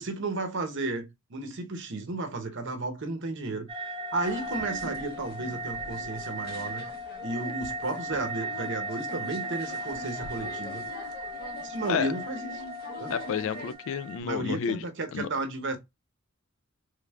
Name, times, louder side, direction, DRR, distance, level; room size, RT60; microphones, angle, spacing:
voice 1, 0.0-3.7 4.1-6.9 7.2-10.8 11.6-12.6 13.0-13.1 14.2-15.8, right 2 dB, 60° right, 0.8 m, -33 dB
sound 1, 3.7-14.2, right 1 dB, 25° right, 0.5 m, -37 dB
sound 2, 4.2-13.7, equal, 45° left, 0.8 m, -44 dB
voice 2, 13.1-14.8 15.1-15.3, left 7 dB, 65° left, 0.3 m, -30 dB
3.4 x 3.4 x 2.2 m
head